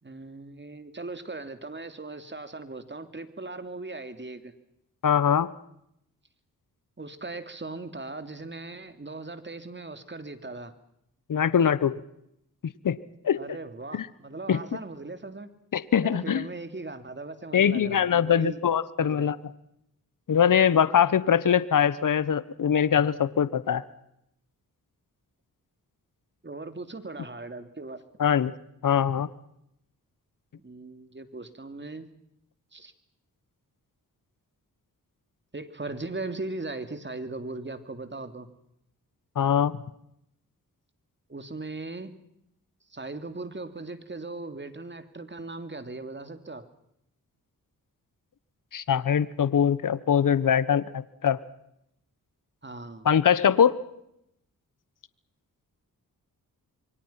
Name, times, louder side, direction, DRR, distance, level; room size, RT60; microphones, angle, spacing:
voice 1, 0.0-4.5 7.0-10.7 13.3-15.5 16.0-18.6 19.0-19.3 26.4-28.0 30.6-32.1 32.7-32.9 35.5-38.5 41.3-42.1 42.9-46.6 52.6-53.1, right 3 dB, 30° right, 9 dB, 2.9 m, -38 dB
voice 2, 5.0-5.5 11.3-12.0 12.8-13.0 13.2-13.4 13.9-14.1 14.5-14.6 15.7-16.4 17.5-19.4 20.3-23.8 28.2-28.5 28.8-29.3 39.4-39.8 48.7-51.4 53.0-53.8, left 8 dB, 65° left, 17 dB, 1.1 m, -22 dB
27.5 x 24.0 x 5.8 m, 0.77 s
cardioid pair, 55°, 35 cm